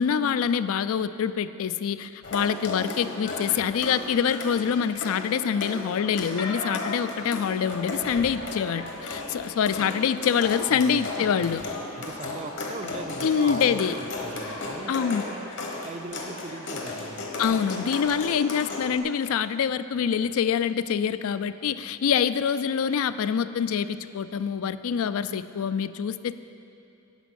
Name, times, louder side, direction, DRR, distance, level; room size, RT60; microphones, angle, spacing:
voice 1, 0.0-11.6 13.2-14.0 14.9-15.3 17.4-26.3, left 7 dB, 70° left, 14 dB, 0.3 m, -25 dB
sound 1, 2.2-19.0, left 2 dB, 55° left, 1.2 m, -35 dB
voice 2, 10.7-15.5 15.8-17.3, right 3 dB, 30° right, 9 dB, 0.4 m, -41 dB
10.5 x 5.1 x 8.2 m, 2.7 s
head